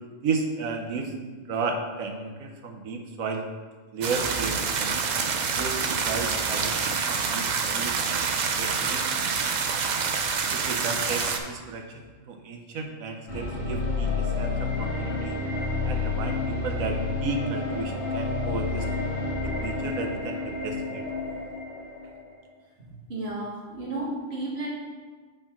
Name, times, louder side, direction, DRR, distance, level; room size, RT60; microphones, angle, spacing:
voice 1, 0.2-1.1 1.5-3.4 3.9-5.0 5.6-7.5 7.8-9.1 10.5-15.4 15.8-18.9 19.4-21.0, right 4 dB, 85° right, 3 dB, 1.2 m, -33 dB
sound 1, 4.0-11.4, right 5 dB, 70° right, 0.4 m, -27 dB
sound 2, 13.3-22.3, left 3 dB, 40° left, 2.0 m, -29 dB
voice 2, 22.8-24.7, right 2 dB, 50° right, -5 dB, 1.8 m, -33 dB
5.1 x 4.3 x 5.8 m, 1.4 s
omnidirectional pair, 1.4 m